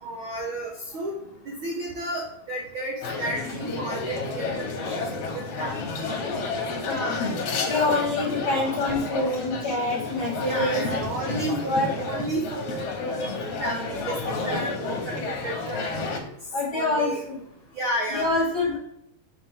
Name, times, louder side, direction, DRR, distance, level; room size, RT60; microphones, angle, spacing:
voice 1, 0.0-6.1 7.7-7.9 10.4-13.3 13.6-15.9 16.7-17.2 17.7-18.4, right 1 dB, 75° right, 0 dB, 1.2 m, -32 dB
sound 1, 3.0-16.2, left 3 dB, 65° left, 1.8 m, -30 dB
voice 2, 6.8-7.2 7.6-10.8 11.6-11.9 14.5-14.6 16.5-17.1 18.1-18.8, left 2 dB, 45° left, -2 dB, 1.4 m, -26 dB
7.0 x 5.1 x 3.6 m, 0.77 s
omnidirectional pair, 3.5 m